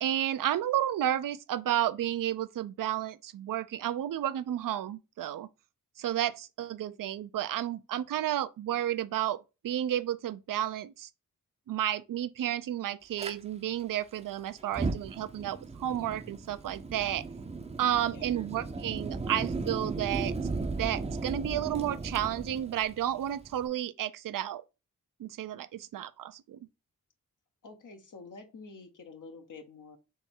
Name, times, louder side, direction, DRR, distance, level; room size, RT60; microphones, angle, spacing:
voice 1, 0.0-5.5 6.0-11.1 11.7-17.2 17.8-20.4 20.8-24.6 25.2-26.6, right 11 dB, 75° right, 0.5 m, -32 dB
Fire, 13.2-13.3 14.6-23.7, right 3 dB, 20° right, 0.5 m, -36 dB
voice 2, 27.6-30.0, left 4 dB, 70° left, 0.9 m, -48 dB
3.6 x 3.1 x 4.4 m
wide cardioid pair, 95°, 33 cm